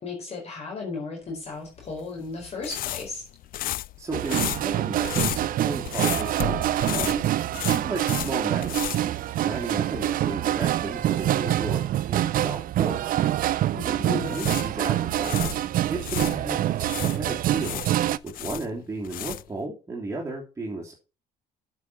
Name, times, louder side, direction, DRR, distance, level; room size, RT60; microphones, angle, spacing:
voice 1, 0.0-3.2 13.7-14.5, left 3 dB, 40° left, 0 dB, 4.4 m, -35 dB
sound 1, 1.8-9.8 10.1-10.3 14.0-16.4 16.8-19.6, left 14 dB, 60° left, 0.4 m, -33 dB
voice 2, 4.0-9.0 9.4-13.0 13.8-15.5 15.9-17.8 18.2-20.9, right 2 dB, 20° right, -3 dB, 3.1 m, -34 dB
sound 2, 4.1-18.2, right 13 dB, 55° right, 0.5 m, -26 dB
8.1 x 6.9 x 5.9 m, 0.32 s
cardioid pair, 110°, 17 cm